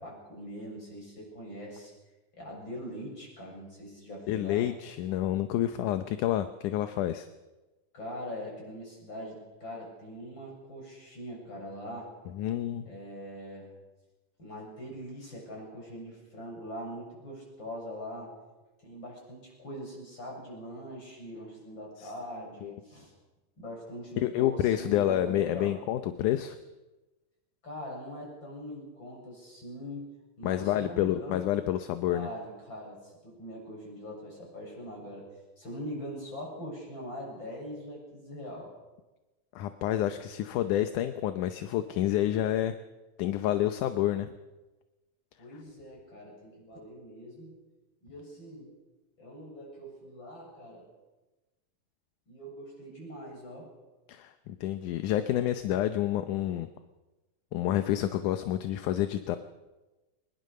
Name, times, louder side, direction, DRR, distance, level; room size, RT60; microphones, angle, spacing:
voice 1, 0.0-1.9 2.4-4.7 7.9-12.1 12.8-13.7 14.4-18.4 18.8-23.1 23.6-25.7 27.6-31.5 32.1-35.2 35.6-38.7 45.4-47.5 48.0-48.7 49.2-50.9 52.3-53.7, equal, 35° left, -1 dB, 8.1 m, -42 dB
voice 2, 4.3-7.3 12.3-12.9 22.0-22.1 22.6-22.8 24.2-26.6 30.4-32.3 39.6-42.8 43.2-44.3 54.1-56.7 57.5-59.4, left 12 dB, 80° left, 9 dB, 2.3 m, -29 dB
23.5 x 20.5 x 6.6 m, 1.1 s
omnidirectional pair, 3.7 m